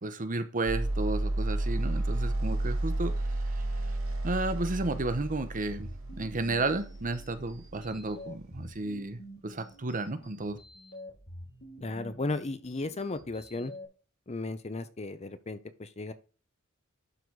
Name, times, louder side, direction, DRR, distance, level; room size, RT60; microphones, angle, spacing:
voice 1, 0.0-3.1 4.2-10.6, right 2 dB, 40° right, 10 dB, 0.9 m, -32 dB
sound 1, 0.7-8.8, right 1 dB, 70° right, 1.7 m, -32 dB
sound 2, 5.6-13.8, equal, 50° left, 3.1 m, -49 dB
voice 2, 11.8-13.7 14.3-16.1, left 2 dB, 30° left, 12 dB, 0.7 m, -35 dB
11.5 x 4.1 x 4.7 m, 0.37 s
head